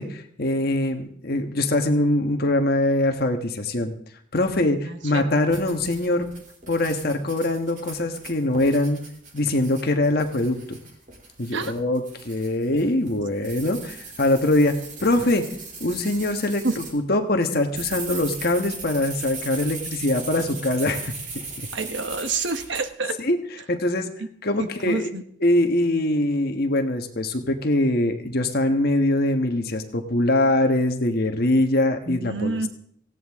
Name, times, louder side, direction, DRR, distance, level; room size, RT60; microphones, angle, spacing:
voice 1, 0.0-3.9 4.3-6.3 6.7-9.0 9.3-10.8 11.4-15.4 15.8-21.1 23.2-24.1 24.4-25.1 25.4-32.7, left 1 dB, 50° left, 5 dB, 1.4 m, -23 dB
sound 1, 5.5-17.0 17.4-22.8, right 4 dB, 40° right, 3.2 m, -38 dB
voice 2, 21.7-23.2 24.6-25.2 32.1-32.7, right 3 dB, 65° right, 9 dB, 1.2 m, -28 dB
17.5 x 16.0 x 3.7 m, 0.65 s
head